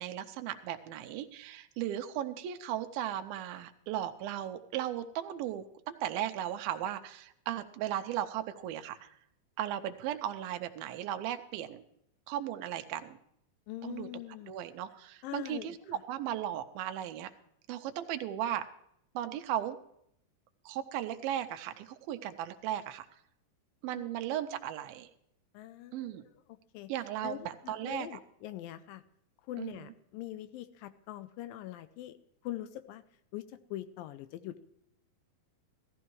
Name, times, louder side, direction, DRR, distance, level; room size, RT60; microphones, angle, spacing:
voice 1, 0.0-9.1 9.6-11.8 12.3-13.2 13.8-14.1 14.5-17.3 17.7-18.7 19.2-19.8 20.7-23.1 23.8-25.1 25.9-26.3 26.9-28.1 29.6-29.7, right 11 dB, 90° right, 8 dB, 2.5 m, -36 dB
voice 2, 13.7-14.5 15.2-16.0 24.0-24.1 25.5-26.9 27.2-29.0 29.5-32.1 32.4-33.0 33.3-34.6, left 14 dB, 80° left, 12 dB, 2.3 m, -43 dB
17.0 x 13.5 x 3.1 m, 0.74 s
omnidirectional pair, 4.2 m